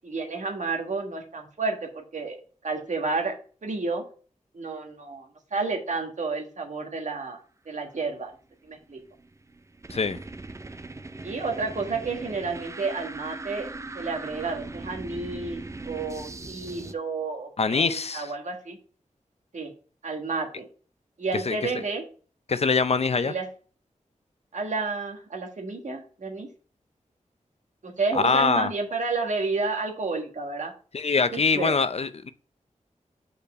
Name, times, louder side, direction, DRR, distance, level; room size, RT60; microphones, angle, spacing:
voice 1, 0.0-2.4 2.6-3.4 3.6-4.0 4.5-5.3 5.5-7.4 7.7-8.3 8.6-9.0 11.2-13.7 13.9-18.8 19.5-19.7 20.0-20.7 21.2-22.0 23.2-23.5 24.5-26.5 27.8-30.7 31.3-31.8, right 3 dB, 65° right, 1.4 m, -31 dB
sound 1, 8.8-16.9, right 2 dB, 20° right, 0.4 m, -39 dB
voice 2, 17.6-18.3 21.4-21.6 22.5-23.3 28.1-28.7 30.9-32.3, left 4 dB, 50° left, 0.5 m, -23 dB
5.4 x 4.4 x 5.4 m
wide cardioid pair, 95°, 13 cm